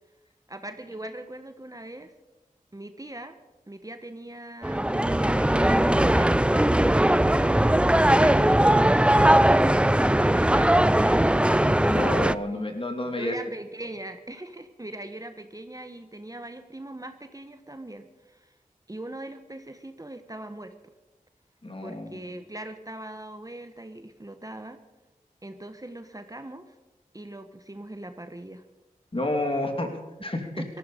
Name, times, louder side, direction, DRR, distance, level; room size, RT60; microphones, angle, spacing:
voice 1, 0.5-2.1 2.7-3.4 3.7-11.6 13.0-18.5 18.9-20.7 21.8-24.8 25.4-26.8 27.1-28.6 30.6-30.7, right 1 dB, 25° right, 8 dB, 1.2 m, -41 dB
sound 1, 4.6-12.3, right 1 dB, 5° right, 0.5 m, -20 dB
voice 2, 11.9-13.3 21.6-22.2 29.1-29.9 30.2-30.6, left 2 dB, 40° left, 4 dB, 3.0 m, -30 dB
18.0 x 14.0 x 5.1 m, 1.1 s
cardioid pair, 40°, 15 cm